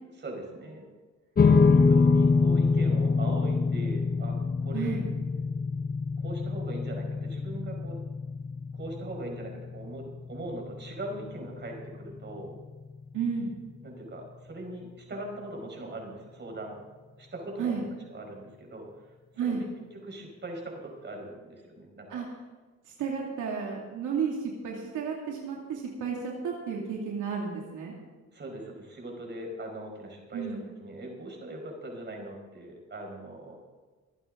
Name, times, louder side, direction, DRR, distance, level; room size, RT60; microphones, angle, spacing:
voice 1, 0.1-0.9 1.5-5.0 6.2-8.0 8.7-12.5 13.8-16.8 17.2-17.8 18.1-18.9 19.3-19.7 19.9-22.2 28.3-33.6, right 1 dB, 35° right, 1 dB, 4.8 m, -40 dB
sound 1, 1.4-13.9, left 4 dB, 30° left, 0.9 m, -26 dB
voice 2, 13.1-13.5 17.6-17.8 19.4-19.6 22.1-22.3 23.0-27.9 30.3-30.6, right 6 dB, 80° right, -2 dB, 2.5 m, -32 dB
26.0 x 8.9 x 3.8 m, 1.3 s
cardioid pair, 90°, 30 cm